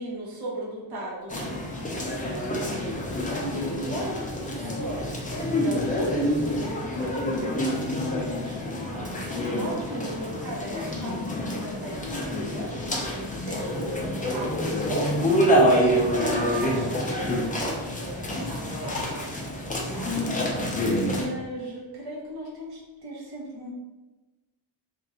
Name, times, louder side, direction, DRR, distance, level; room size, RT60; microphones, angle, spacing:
voice 1, 0.0-1.4 1.8-5.1 5.4-8.8 9.1-11.2 11.5-12.8 13.1-13.9 14.3-23.7, equal, 60° right, -4 dB, 1.0 m, -37 dB
sound 1, 1.3-21.3, equal, 20° left, 0.5 m, -27 dB
2.6 x 2.6 x 4.1 m, 1.1 s
wide cardioid pair, 125°, 45 cm